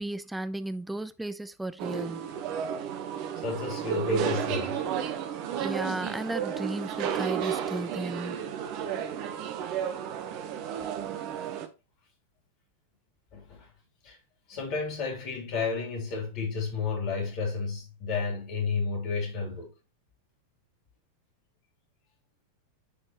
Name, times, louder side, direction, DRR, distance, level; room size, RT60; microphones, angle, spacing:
voice 1, 0.0-2.4 5.6-8.4, right 1 dB, 5° right, 0.6 m, -34 dB
sound 1, 1.8-11.7, right 8 dB, 45° right, 1.1 m, -32 dB
voice 2, 3.4-4.8 11.1-11.2 13.3-13.7 14.0-14.2 14.5-19.7, left 4 dB, 40° left, 3.4 m, -32 dB
10.5 x 4.4 x 3.1 m
figure-of-eight pair, 90°, 0 cm